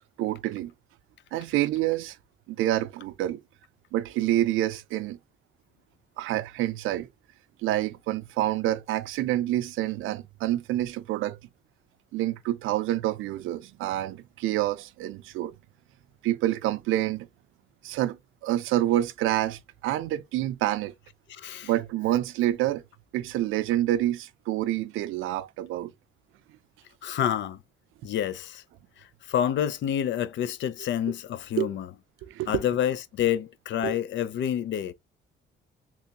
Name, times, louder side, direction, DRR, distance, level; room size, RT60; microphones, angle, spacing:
voice 1, 0.2-0.7 1.3-2.2 2.5-3.4 3.9-5.2 6.2-7.1 7.6-11.4 12.1-15.5 16.2-17.3 17.8-20.9 21.6-22.8 23.1-25.9 31.6-31.7 32.3-32.6 33.8-34.0, right 14 dB, 85° right, 0.5 m, -27 dB
voice 2, 21.3-21.7 27.0-27.6 28.0-28.6 29.0-31.9 32.5-34.9, left 10 dB, 65° left, 0.5 m, -28 dB
3.4 x 3.0 x 2.8 m
cardioid pair, 90°, 20 cm